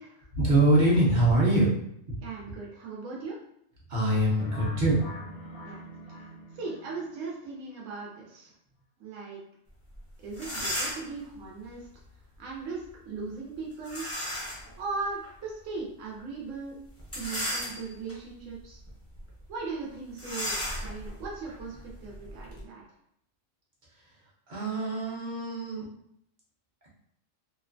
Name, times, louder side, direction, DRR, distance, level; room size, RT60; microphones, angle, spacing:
voice 1, 0.3-1.7 3.9-5.0 5.4-5.6 24.5-25.9, right 1 dB, 45° right, -6 dB, 0.7 m, -24 dB
voice 2, 2.2-3.4 5.6-5.9 6.2-6.3 6.5-8.5 9.0-9.4 10.2-11.9 12.4-14.1 14.8-16.8 17.1-18.8 19.5-21.8 22.0-22.8, right 4 dB, 80° right, -3 dB, 1.0 m, -38 dB
sound 1, 4.4-7.3, left 2 dB, 60° left, 0.7 m, -40 dB
sound 2, 9.9-10.0 10.3-11.2 13.8-14.7 15.2-15.3 17.0-18.1 18.7-18.9 19.2-19.3 20.2-22.6, equal, 20° left, 0.4 m, -35 dB
2.5 x 2.2 x 2.4 m, 0.73 s
omnidirectional pair, 1.3 m